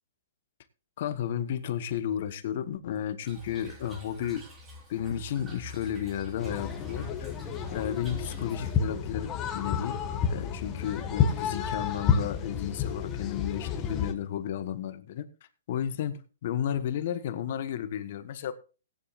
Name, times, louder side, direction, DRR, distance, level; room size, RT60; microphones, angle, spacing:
voice 1, 1.0-4.4 4.9-7.3 7.7-10.0 10.3-15.3 15.7-18.5, left 9 dB, 50° left, 1.2 m, -33 dB
Toilet flush / Trickle dribble, 3.2-8.8, left 2 dB, 15° right, 5.7 m, -47 dB
sound 1, 6.4-14.1, left 7 dB, 20° left, 1.6 m, -30 dB
18.0 x 10.0 x 2.5 m
hypercardioid pair, 150°, 0 cm